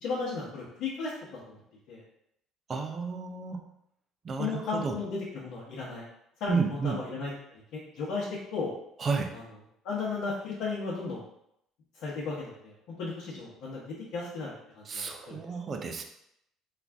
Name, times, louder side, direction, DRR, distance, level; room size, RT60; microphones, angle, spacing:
voice 1, 0.0-1.6 1.9-2.0 4.4-6.0 6.4-8.3 8.5-8.7 9.8-11.3 12.0-12.7 13.0-15.4, left 4 dB, 65° left, -7 dB, 1.0 m, -35 dB
voice 2, 2.7-3.6 4.2-5.0 6.5-7.0 9.0-9.3 14.9-16.0, right 4 dB, 25° right, 5 dB, 0.4 m, -31 dB
3.9 x 2.5 x 3.4 m, 0.76 s
cardioid pair, 170°, 0 cm